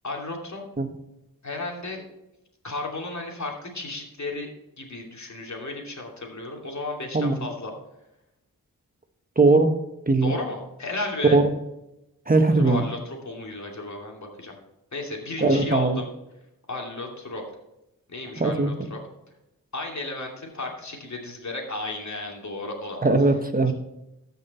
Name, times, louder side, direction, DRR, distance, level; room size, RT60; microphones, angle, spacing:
voice 1, 0.0-0.6 1.4-2.0 2.6-4.5 4.8-7.7 10.2-11.4 12.5-14.5 14.9-16.1 16.7-17.4 18.1-19.0 19.7-23.1 23.7-23.8, left 2 dB, 55° left, 0 dB, 2.7 m, -34 dB
voice 2, 9.4-9.8 10.1-10.3 11.3-11.5 12.3-12.9 15.4-16.0 18.4-18.9 23.0-23.7, right 3 dB, 25° right, 7 dB, 1.2 m, -20 dB
14.0 x 5.6 x 4.3 m, 0.90 s
wide cardioid pair, 55°, 35 cm